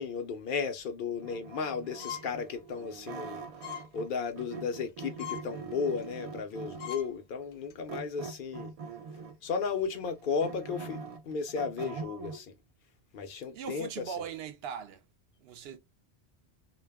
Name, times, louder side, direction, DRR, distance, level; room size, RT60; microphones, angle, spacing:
voice 1, 0.0-3.4 3.9-8.7 9.4-12.5 13.1-14.2, left 5 dB, 60° left, 0.7 m, -34 dB
sound 1, 1.2-4.1 4.4-7.1 7.9-9.5 9.9-12.4, right 5 dB, 50° right, 0.4 m, -43 dB
sound 2, 2.0-2.4 2.8-2.9 3.6-3.9 4.3-4.5 4.9-5.0 5.2-5.5 6.0-6.1 6.5-6.6 6.8-7.1 7.5-7.7, left 10 dB, 90° left, 0.9 m, -41 dB
voice 2, 13.5-15.0 15.4-15.8, right 8 dB, 75° right, 0.8 m, -39 dB
2.3 x 2.1 x 3.3 m
omnidirectional pair, 1.1 m